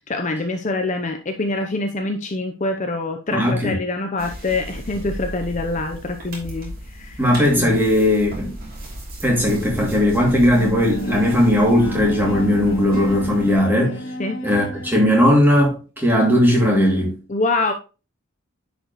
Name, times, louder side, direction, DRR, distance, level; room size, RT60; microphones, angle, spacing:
voice 1, 0.1-7.3 7.6-7.8 14.2-14.4 17.3-17.7, left 2 dB, 35° left, 0.6 m, -25 dB
voice 2, 3.3-3.8 7.2-8.5 9.2-14.0 14.4-17.2, left 1 dB, 10° right, 2.4 m, -18 dB
sound 1, 4.2-13.5, equal, 45° right, 3.0 m, -35 dB
Bowed string instrument, 10.5-15.4, left 1 dB, 65° left, 1.2 m, -31 dB
10.0 x 5.2 x 3.0 m
head